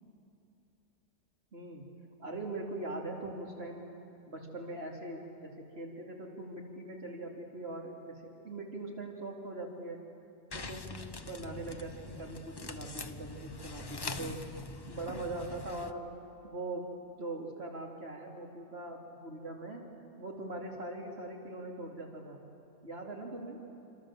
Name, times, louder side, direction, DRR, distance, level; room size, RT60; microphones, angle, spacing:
voice 1, 1.5-1.8 2.2-3.9 4.3-10.0 10.5-14.5 14.9-16.1 16.4-19.8 20.2-22.4 22.8-23.6, right 2 dB, 50° right, 0 dB, 3.3 m, -41 dB
sound 1, 10.5-15.9, left 3 dB, 25° left, 0.6 m, -43 dB
27.5 x 26.0 x 7.5 m, 2.8 s
omnidirectional pair, 1.4 m